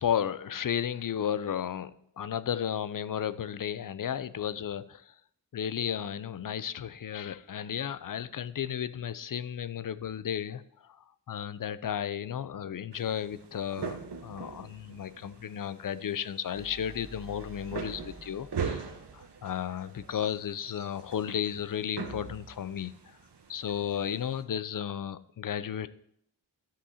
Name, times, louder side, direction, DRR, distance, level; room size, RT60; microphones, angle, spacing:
voice 1, 0.0-5.1 5.5-11.0 11.3-18.8 19.1-23.2 23.5-25.9, left 9 dB, 50° left, 14 dB, 0.5 m, -34 dB
sound 1, 12.9-24.4, right 6 dB, 65° right, 1.0 m, -42 dB
sound 2, 16.5-20.3, right 3 dB, 30° right, 0.8 m, -50 dB
12.5 x 5.6 x 2.8 m, 0.70 s
cardioid pair, 50°, 43 cm